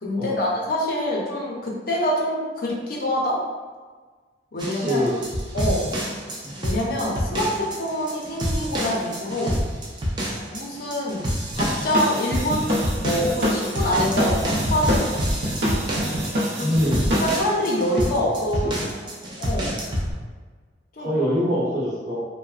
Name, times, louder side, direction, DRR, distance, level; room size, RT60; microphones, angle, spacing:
voice 1, 0.0-3.4 4.5-5.1 5.5-5.9 6.6-9.6 10.5-11.3 11.6-15.2 16.6-16.8 17.2-18.7 19.4-19.8 21.0-21.1, left 1 dB, 55° left, -3 dB, 0.5 m, -25 dB
sound 1, 4.6-20.1, equal, 25° right, 0.4 m, -28 dB
voice 2, 4.8-5.2 6.4-6.5 16.6-17.1 18.6-18.8 21.0-22.2, equal, 45° right, -7 dB, 1.0 m, -24 dB
sound 2, 11.5-17.4, equal, 75° right, 0.5 m, -26 dB
3.0 x 2.0 x 2.4 m, 1.4 s
head